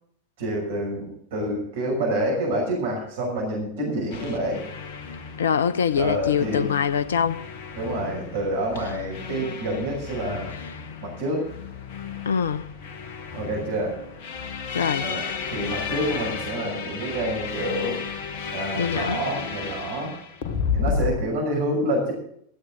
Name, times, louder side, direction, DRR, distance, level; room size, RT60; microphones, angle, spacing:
voice 1, 0.4-4.6 6.0-6.7 7.8-10.5 11.0-11.4 13.3-14.0 15.0-18.0 18.5-20.1 20.7-22.1, right 1 dB, 55° right, 6.2 m, -28 dB
sound 1, 4.1-21.2, left 6 dB, 50° left, 1.5 m, -33 dB
voice 2, 5.4-7.5 12.2-12.7 14.7-15.1 18.7-19.2, left 7 dB, 65° left, 0.7 m, -24 dB
16.0 x 13.5 x 3.9 m
figure-of-eight pair, 90°, 0 cm